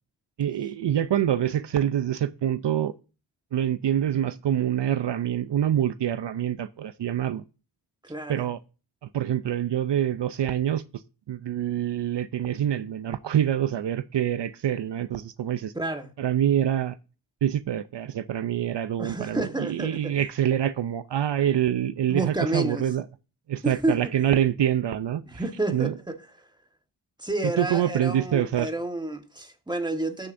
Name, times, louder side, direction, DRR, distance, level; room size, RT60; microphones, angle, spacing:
voice 1, 0.4-2.9 3.5-7.4 8.3-8.6 9.1-10.8 11.3-15.7 16.2-17.0 17.4-23.0 23.5-25.2 25.7-25.9 27.6-28.7, right 10 dB, 70° right, 0.6 m, -25 dB
voice 2, 8.0-8.5 15.7-16.1 19.0-20.2 22.1-22.9 23.6-24.3 25.2-26.2 27.2-30.3, right 2 dB, 10° right, 1.4 m, -30 dB
19.0 x 6.5 x 2.6 m
wide cardioid pair, 75°, 43 cm